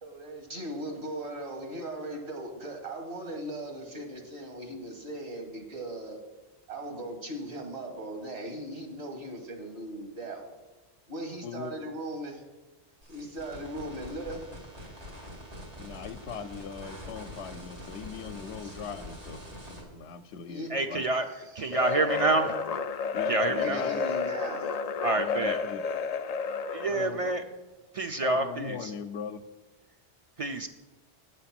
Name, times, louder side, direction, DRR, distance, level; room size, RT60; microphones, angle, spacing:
voice 1, 0.0-6.2 6.7-10.6 11.1-12.4 13.1-14.4 18.6-18.8 20.5-20.7 21.7-21.8 23.6-24.8, right 1 dB, 75° right, 3 dB, 1.9 m, -38 dB
voice 2, 11.4-11.7 15.8-19.4 19.7-21.0 23.1-24.0 25.2-25.8 26.9-27.3 28.2-29.4, left 6 dB, 80° left, 11 dB, 0.9 m, -39 dB
sound 1, 13.0-19.8, equal, 90° right, 2.9 m, -44 dB
voice 3, 20.7-21.3 21.6-22.5 23.3-23.8 25.0-25.6 26.7-27.4 27.9-28.9 30.4-30.7, right 2 dB, 45° right, 7 dB, 0.5 m, -27 dB
sound 2, 21.7-27.2, left 5 dB, 55° left, 0.4 m, -31 dB
8.2 x 7.9 x 5.9 m, 1.1 s
omnidirectional pair, 1.1 m